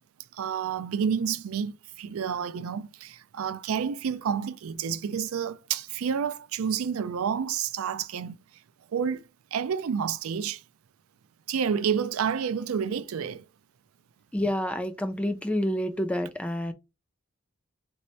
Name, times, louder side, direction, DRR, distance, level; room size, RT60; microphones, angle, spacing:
voice 1, 0.3-8.4 8.9-9.2 9.5-10.6 11.5-13.4, right 7 dB, 85° right, 0.4 m, -29 dB
voice 2, 14.3-16.7, left 1 dB, 5° left, 0.3 m, -28 dB
3.1 x 2.7 x 4.4 m
head